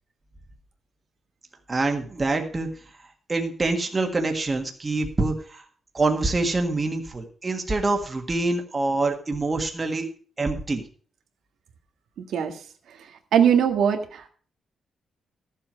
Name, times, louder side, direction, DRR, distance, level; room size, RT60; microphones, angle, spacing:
voice 1, 1.7-2.7 3.3-5.6 5.9-10.1 10.4-10.8, right 2 dB, 20° right, 4 dB, 1.6 m, -25 dB
voice 2, 13.3-14.3, right 8 dB, 85° right, 5 dB, 1.7 m, -20 dB
14.0 x 7.6 x 5.1 m, 0.43 s
wide cardioid pair, 170°, 0 cm